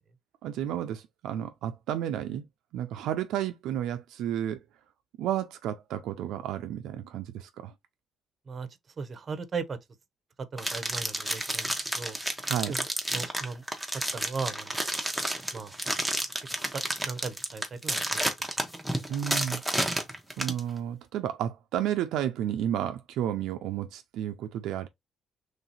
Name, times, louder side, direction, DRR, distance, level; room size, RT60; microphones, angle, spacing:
voice 1, 0.4-2.4 2.7-4.6 5.2-7.7 12.4-12.7 19.1-19.6 20.4-24.9, right 10 dB, 90° right, 0.4 m, -32 dB
voice 2, 9.0-9.8 10.4-12.2 12.7-12.9 13.1-13.6 14.1-14.8 15.5-15.8 16.7-18.3, right 4 dB, 40° right, 0.7 m, -37 dB
sound 1, 10.6-20.6, right 1 dB, ahead, 0.9 m, -31 dB
3.2 x 2.8 x 4.0 m
cardioid pair, 90°, 0 cm